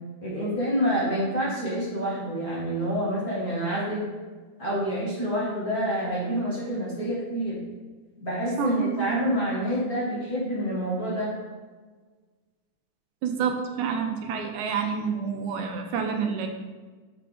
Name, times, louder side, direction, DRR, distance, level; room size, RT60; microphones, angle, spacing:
voice 1, 0.2-4.0 4.6-7.6 8.2-11.3, equal, 40° left, -7 dB, 1.5 m, -27 dB
voice 2, 9.0-9.3 13.2-16.5, right 6 dB, 75° right, 4 dB, 2.0 m, -28 dB
6.3 x 5.8 x 3.5 m, 1.4 s
omnidirectional pair, 3.6 m